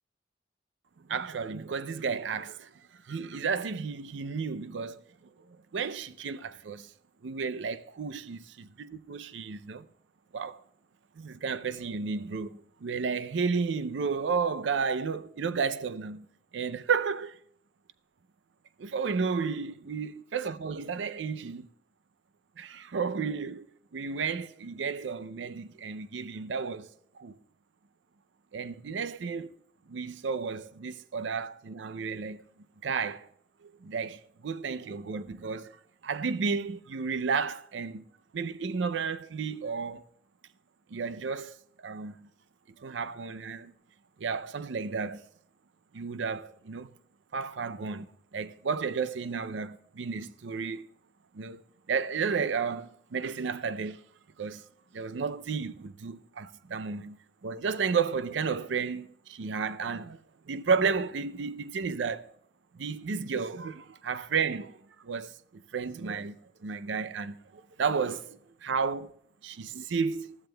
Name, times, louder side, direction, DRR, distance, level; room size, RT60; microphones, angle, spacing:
voice 1, 1.1-5.0 5.5-6.9 7.2-9.9 10.3-10.6 11.2-16.3 16.5-17.3 18.8-21.7 22.6-23.7 23.9-26.9 27.1-27.4 28.5-29.5 29.9-32.4 32.8-33.3 33.6-35.8 36.0-38.0 38.3-40.0 40.9-41.6 41.8-42.3 42.8-43.7 44.2-45.3 45.9-46.9 47.3-48.1 48.3-50.9 51.3-51.6 51.9-54.0 54.4-54.6 54.9-60.2 60.5-62.3 62.7-66.4 66.6-69.1 69.4-70.4, right 5 dB, 80° right, 0.5 m, -32 dB
19.5 x 13.5 x 2.2 m
head